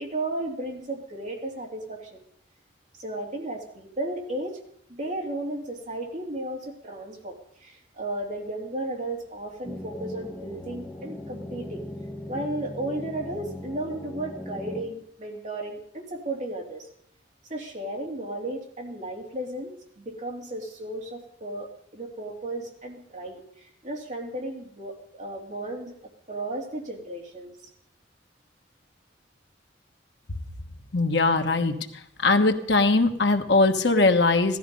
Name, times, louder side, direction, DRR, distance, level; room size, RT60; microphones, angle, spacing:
voice 1, 0.0-2.2 3.0-4.6 4.9-11.8 12.3-16.9 17.5-26.0 26.3-27.6, right 1 dB, 40° right, 0 dB, 2.7 m, -34 dB
sound 1, 9.6-14.8, left 1 dB, 5° left, 1.1 m, -39 dB
voice 2, 30.9-31.7 32.2-34.6, left 3 dB, 65° left, 6 dB, 1.3 m, -20 dB
16.5 x 13.0 x 5.3 m, 0.68 s
head